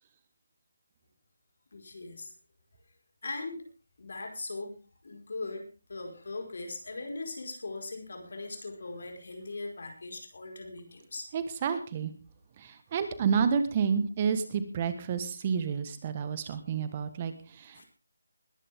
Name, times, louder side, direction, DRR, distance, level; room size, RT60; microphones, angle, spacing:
voice 1, 1.7-2.3 3.2-3.6 4.0-4.7 5.0-5.6 5.9-11.3 17.8-17.9, left 3 dB, 65° left, 4 dB, 4.9 m, -39 dB
voice 2, 11.3-12.1 12.6-17.9, right 6 dB, 30° right, 11 dB, 1.4 m, -30 dB
20.5 x 11.0 x 3.6 m, 0.34 s
figure-of-eight pair, 160°, 0 cm